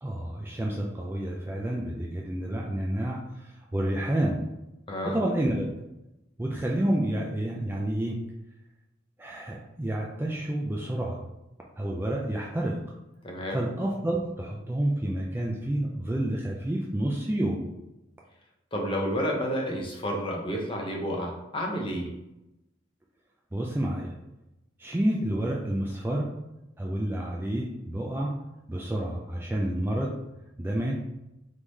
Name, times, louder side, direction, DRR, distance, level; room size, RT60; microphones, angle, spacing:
voice 1, 0.0-4.4 5.0-5.7 6.4-8.3 9.2-11.2 11.8-12.8 13.5-17.6 23.5-24.1 24.8-26.4 26.8-28.4 28.7-30.2 30.6-31.0, right 1 dB, 10° right, -2 dB, 0.3 m, -29 dB
voice 2, 13.2-13.6 18.7-22.1, equal, 25° left, 0 dB, 0.8 m, -30 dB
3.7 x 3.2 x 4.0 m, 0.93 s
head